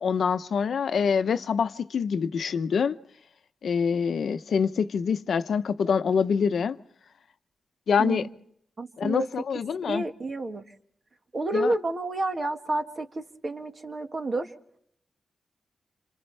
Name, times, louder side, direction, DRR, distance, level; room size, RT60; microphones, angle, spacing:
voice 1, 0.0-3.0 3.6-6.8 7.9-8.3 9.0-10.0 11.5-11.7, left 6 dB, 70° left, 0.8 m, -25 dB
voice 2, 8.0-8.3 8.8-9.3 9.9-10.6 11.3-14.5, right 2 dB, 40° right, 1.9 m, -30 dB
29.0 x 27.5 x 3.4 m
wide cardioid pair, 140°, 0 cm